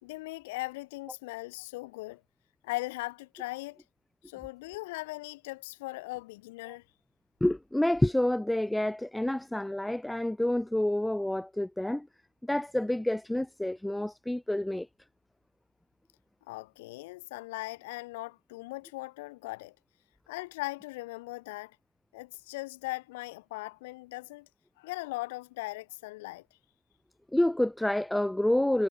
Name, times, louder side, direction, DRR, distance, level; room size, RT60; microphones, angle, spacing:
voice 1, 0.0-2.2 2.6-3.8 4.3-6.8 16.5-19.7 20.3-21.8 22.1-24.5 24.8-26.4, left 21 dB, 65° left, 1.5 m, -39 dB
voice 2, 7.4-12.1 12.4-14.9 27.3-28.9, left 1 dB, 5° left, 1.9 m, -28 dB
hypercardioid pair, 90°, 0 cm